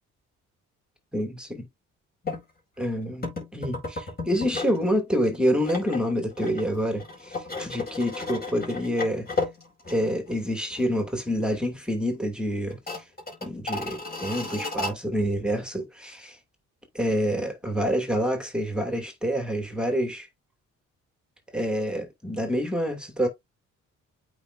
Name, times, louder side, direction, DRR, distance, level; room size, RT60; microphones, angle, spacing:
voice 1, 1.1-1.7 2.8-9.3 9.9-13.0 13.4-16.4 16.9-20.3 21.5-23.3, equal, 5° right, 2.4 m, -27 dB
sound 1, 2.2-2.4 3.2-4.8 5.1-10.4 10.7-10.8 11.3-11.8 12.1-12.2 12.7-14.9, left 3 dB, 30° left, 4.9 m, -34 dB
8.6 x 4.9 x 2.6 m
cardioid pair, 90°, 30 cm